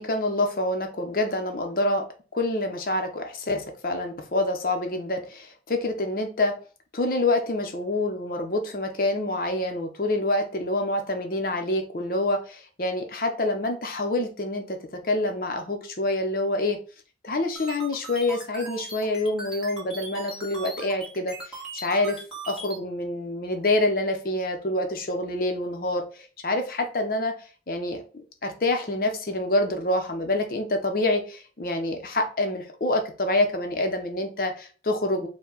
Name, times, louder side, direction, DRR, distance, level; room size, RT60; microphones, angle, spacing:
voice 1, 0.0-2.1 2.3-6.5 6.9-16.8 17.2-22.2 22.5-26.0 26.4-27.3 27.7-28.0 28.4-35.3, left 2 dB, 55° left, 5 dB, 0.7 m, -26 dB
sound 1, 17.6-22.8, right 2 dB, 5° right, 1.5 m, -39 dB
4.6 x 2.2 x 3.9 m, 0.38 s
head